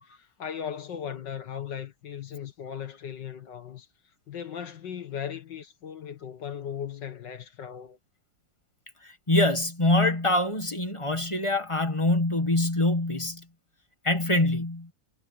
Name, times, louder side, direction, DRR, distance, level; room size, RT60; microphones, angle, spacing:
voice 1, 0.0-3.9 4.3-8.0, left 8 dB, 85° left, 2.3 m, -37 dB
voice 2, 9.3-13.4 14.0-14.9, left 1 dB, 20° left, 1.5 m, -24 dB
omnidirectional pair, 1.9 m